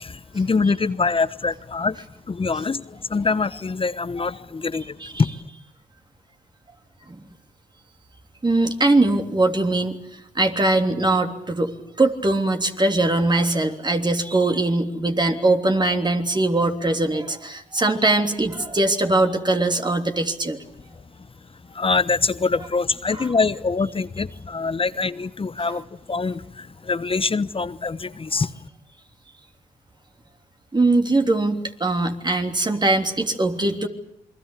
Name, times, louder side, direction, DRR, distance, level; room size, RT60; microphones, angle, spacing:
voice 1, 0.0-2.0 2.3-5.3 21.7-28.5, left 4 dB, 35° left, 14 dB, 1.1 m, -24 dB
voice 2, 8.4-20.6 23.1-23.3 30.7-33.9, right 2 dB, 25° right, 4 dB, 3.3 m, -21 dB
28.5 x 21.5 x 8.4 m, 0.77 s
supercardioid pair, 55°, 17 cm